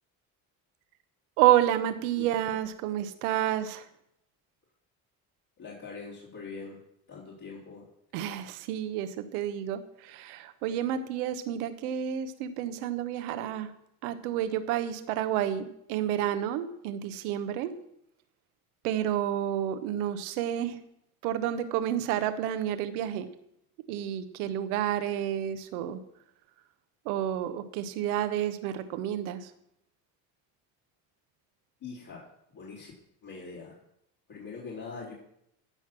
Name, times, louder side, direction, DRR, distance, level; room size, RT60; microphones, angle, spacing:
voice 1, 1.4-3.9 8.1-13.7 14.0-17.7 18.8-20.8 21.2-23.3 23.9-26.0 27.0-29.5, right 11 dB, 85° right, 11 dB, 1.1 m, -30 dB
voice 2, 5.6-6.8 7.1-7.9 31.8-32.3 32.5-32.9 33.2-33.8 34.3-35.1, left 4 dB, 55° left, -7 dB, 4.1 m, -42 dB
15.0 x 5.9 x 6.1 m, 0.77 s
hypercardioid pair, 70°, 43 cm